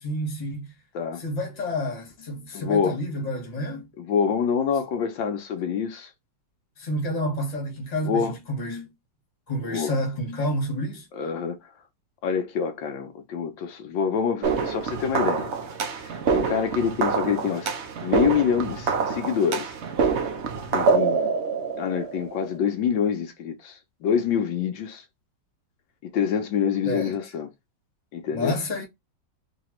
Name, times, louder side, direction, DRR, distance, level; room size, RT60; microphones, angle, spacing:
voice 1, 0.0-0.7 1.1-3.9 6.8-8.9 9.5-11.1 26.8-27.2 28.3-28.8, left 1 dB, 25° left, 1.2 m, -29 dB
voice 2, 2.5-3.0 4.0-6.1 8.0-8.4 9.6-9.9 11.1-11.6 12.2-15.5 15.9-17.7 18.0-19.7 20.7-21.3 21.8-25.0 26.0-27.5 28.1-28.5, left 7 dB, 75° left, 1.4 m, -26 dB
sound 1, 14.4-22.6, right 5 dB, 65° right, 0.7 m, -26 dB
4.0 x 2.8 x 3.0 m
omnidirectional pair, 2.0 m